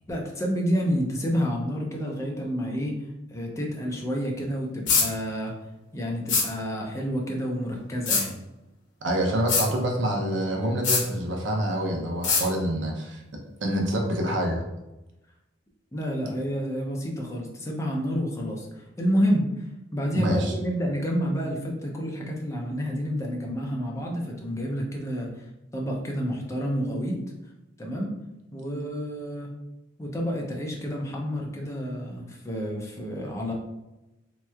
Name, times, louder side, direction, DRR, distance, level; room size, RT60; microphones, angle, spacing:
voice 1, 0.1-3.0 3.3-5.5 5.9-8.4 15.9-19.5 19.9-25.5 25.7-27.2 27.8-28.1 28.5-29.5 30.0-33.5, equal, 15° left, -1 dB, 0.5 m, -29 dB
sound 1, 4.9-5.1 6.3-6.5 8.1-8.2 9.5-9.7 10.8-11.0 12.2-12.4, left 5 dB, 90° left, 0.8 m, -22 dB
voice 2, 9.0-13.2 13.6-14.6 20.1-20.5, right 1 dB, 80° right, 1 dB, 0.6 m, -26 dB
3.2 x 2.9 x 2.3 m, 0.97 s
head